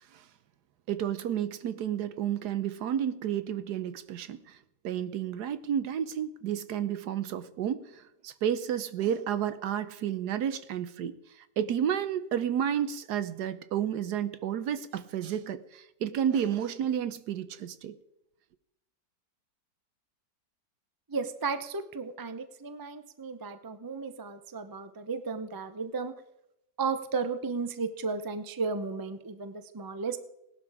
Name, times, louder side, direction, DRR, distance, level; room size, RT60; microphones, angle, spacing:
voice 1, 0.9-4.4 4.8-11.2 11.6-17.9, right 9 dB, 70° right, 13 dB, 1.3 m, -31 dB
voice 2, 21.1-26.1 26.8-30.2, right 4 dB, 30° right, 10 dB, 0.4 m, -34 dB
18.0 x 11.5 x 4.9 m, 0.88 s
omnidirectional pair, 1.8 m